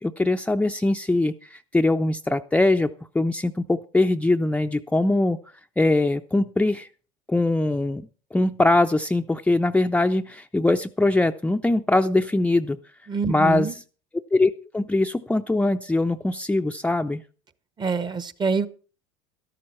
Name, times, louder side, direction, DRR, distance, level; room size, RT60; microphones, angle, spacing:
voice 1, 0.0-5.4 5.8-6.9 7.3-12.8 13.3-13.7 14.3-17.2, left 2 dB, 10° left, 5 dB, 0.6 m, -22 dB
voice 2, 13.1-13.8 17.8-18.7, right 5 dB, 25° right, 15 dB, 1.0 m, -25 dB
13.0 x 12.0 x 4.3 m, 0.38 s
hypercardioid pair, 80°, 16 cm